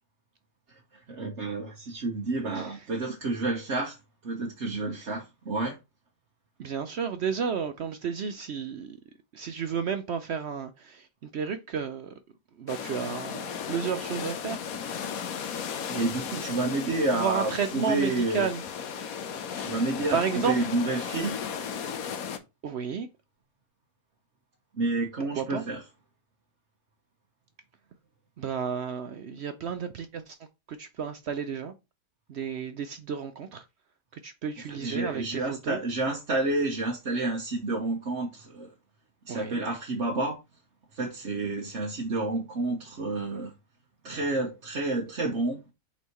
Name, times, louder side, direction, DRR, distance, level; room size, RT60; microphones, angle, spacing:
voice 1, 1.1-4.0 4.2-5.8 15.9-18.5 19.5-21.4 24.7-25.8 34.6-38.7 39.3-40.4 40.9-43.5 44.0-45.6, right 2 dB, 50° right, 1.3 m, -30 dB
voice 2, 6.6-9.0 9.3-12.1 12.6-14.6 17.1-18.6 20.1-20.6 22.6-23.1 25.2-25.6 28.4-30.4 30.7-31.7 32.3-33.6 34.2-35.8 39.3-39.6, right 6 dB, 65° right, 0.6 m, -32 dB
sound 1, 12.7-22.4, left 7 dB, 65° left, 1.2 m, -35 dB
8.0 x 4.2 x 3.0 m
omnidirectional pair, 1.7 m